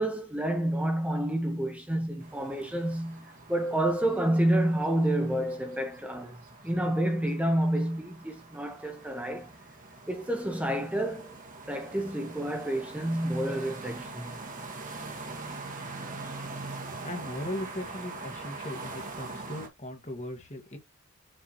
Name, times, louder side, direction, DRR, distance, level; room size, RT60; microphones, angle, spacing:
voice 1, 0.0-6.4 6.6-9.5 10.1-11.4 11.7-14.4, right 1 dB, 5° right, 1.3 m, -29 dB
sound 1, 2.2-19.7, right 3 dB, 40° right, 2.0 m, -43 dB
voice 2, 16.8-20.8, left 1 dB, 35° left, 1.9 m, -38 dB
6.9 x 3.5 x 4.5 m
head